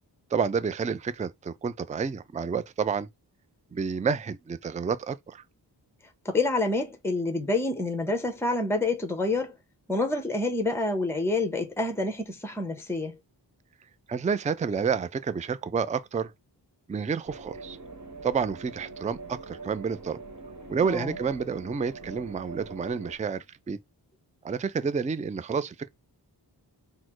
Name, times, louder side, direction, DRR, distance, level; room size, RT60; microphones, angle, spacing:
voice 1, 0.3-3.1 3.7-5.4 14.1-16.3 16.9-17.8 18.2-20.2 20.7-23.8 24.4-25.9, right 6 dB, 20° right, 0.3 m, -29 dB
voice 2, 6.2-9.6 9.9-13.1 20.8-21.2, left 2 dB, 5° left, 0.9 m, -27 dB
sound 1, 17.2-23.1, right 3 dB, 40° right, 1.3 m, -43 dB
4.2 x 2.1 x 4.4 m
wide cardioid pair, 55°, 42 cm